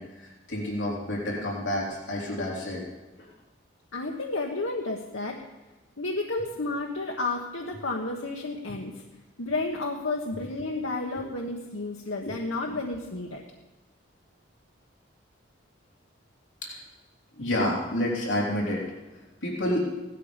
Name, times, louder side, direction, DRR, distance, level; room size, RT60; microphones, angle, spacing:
voice 1, 0.0-2.8 3.2-3.3 12.2-12.3 12.7-12.8 16.6-16.8 17.4-18.8 19.4-19.8, left 1 dB, 70° left, -3 dB, 3.4 m, -29 dB
voice 2, 3.9-5.4 6.0-9.0 9.4-13.4, left 2 dB, 85° left, 1 dB, 1.3 m, -31 dB
16.5 x 12.5 x 5.2 m, 1.1 s
head